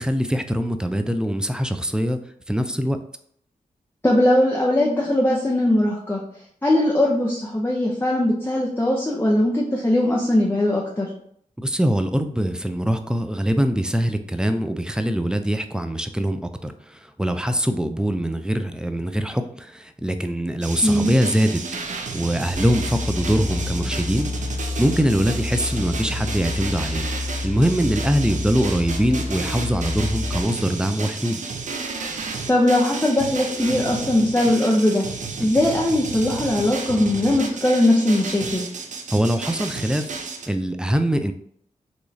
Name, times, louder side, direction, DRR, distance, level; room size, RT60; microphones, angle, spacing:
voice 1, 0.0-2.2 2.5-3.0 11.6-24.3 24.8-27.1 27.4-31.4 39.1-40.1 40.5-41.3, equal, 5° right, 8 dB, 0.4 m, -23 dB
voice 2, 4.0-6.2 6.6-11.1 20.8-21.1 32.5-35.0 35.4-38.7, left 1 dB, 15° left, -3 dB, 0.7 m, -20 dB
sound 1, 20.6-40.5, right 4 dB, 60° right, 0.5 m, -32 dB
sound 2, 22.5-30.4, left 3 dB, 65° left, 1.0 m, -29 dB
3.0 x 2.3 x 4.0 m, 0.67 s
cardioid pair, 45°, 14 cm